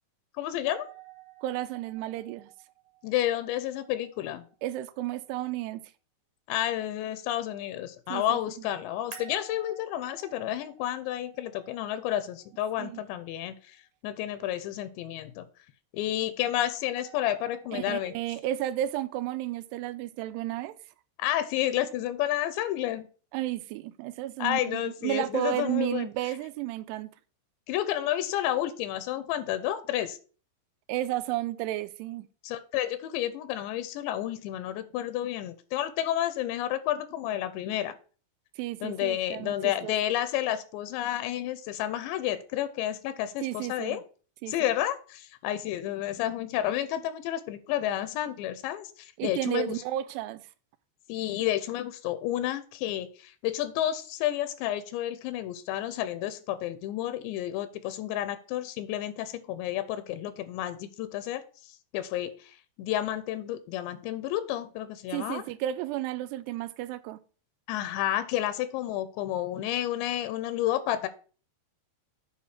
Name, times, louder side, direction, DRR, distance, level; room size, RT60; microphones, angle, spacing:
voice 1, 0.4-0.9 3.0-4.5 6.5-13.8 14.0-15.5 15.9-18.1 21.2-23.1 24.4-26.1 27.7-30.2 32.4-37.9 38.8-44.0 44.5-49.7 51.1-65.4 67.7-71.1, left 12 dB, 85° left, 2.9 m, -31 dB
sound 1, 0.6-5.6 9.1-13.2 17.0-18.2, right 8 dB, 55° right, 2.6 m, -53 dB
voice 2, 1.4-2.5 4.6-5.8 8.1-8.7 12.8-13.0 17.7-20.8 23.3-27.1 30.9-32.3 38.6-39.9 43.4-44.0 44.4-44.5 49.2-50.4 65.1-67.2, right 14 dB, 80° right, 2.6 m, -32 dB
8.6 x 4.8 x 5.8 m
omnidirectional pair, 5.0 m